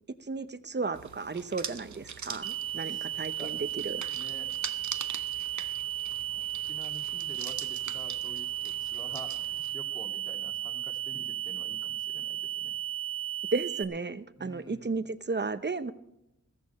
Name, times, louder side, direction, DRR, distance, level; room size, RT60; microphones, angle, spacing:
voice 1, 0.3-4.0 13.5-15.9, right 4 dB, 35° right, 12 dB, 0.8 m, -34 dB
sound 1, 0.9-9.7, right 7 dB, 70° right, 0.8 m, -43 dB
sound 2, 2.4-13.8, right 12 dB, 20° right, 1.4 m, -34 dB
voice 2, 2.8-3.1 3.4-4.6 6.1-12.8 14.4-14.9, left 1 dB, 15° left, 4 dB, 2.0 m, -49 dB
15.0 x 15.0 x 4.3 m, 0.84 s
wide cardioid pair, 80°, 30 cm